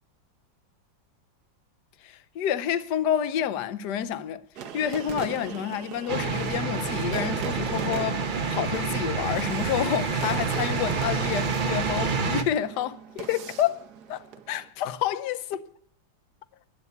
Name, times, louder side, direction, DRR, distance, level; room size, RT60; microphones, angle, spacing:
voice 1, 2.0-4.4 4.7-15.6, left 10 dB, 65° left, 1.3 m, -29 dB
sound 1, 4.6-14.7, right 8 dB, 65° right, 1.3 m, -40 dB
sound 2, 6.1-12.4, right 4 dB, 40° right, 0.7 m, -28 dB
10.5 x 8.2 x 9.4 m
omnidirectional pair, 2.1 m